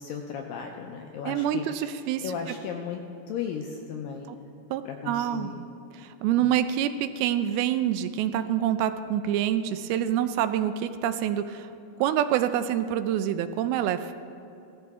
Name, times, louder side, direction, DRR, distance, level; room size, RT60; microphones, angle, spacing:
voice 1, 0.0-1.9 2.2-4.5 4.9-5.6, left 7 dB, 85° left, 2 dB, 2.0 m, -36 dB
voice 2, 1.3-2.4 4.7-5.7 5.9-11.7 12.0-14.1, right 10 dB, 85° right, 11 dB, 2.2 m, -26 dB
18.0 x 14.0 x 3.6 m, 2.7 s
omnidirectional pair, 4.8 m